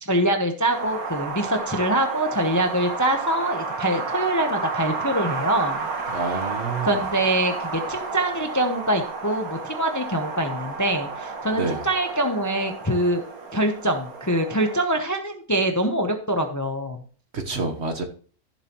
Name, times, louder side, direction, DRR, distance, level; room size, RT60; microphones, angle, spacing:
voice 1, 0.0-5.9 6.8-13.2 13.5-17.0, right 1 dB, 15° left, 5 dB, 0.7 m, -24 dB
Wind, 0.7-14.8, right 4 dB, 75° right, 2.0 m, -32 dB
voice 2, 6.1-7.0 11.5-11.9 17.3-18.0, right 3 dB, 50° right, 6 dB, 1.4 m, -28 dB
14.5 x 7.2 x 3.0 m, 0.43 s
omnidirectional pair, 1.5 m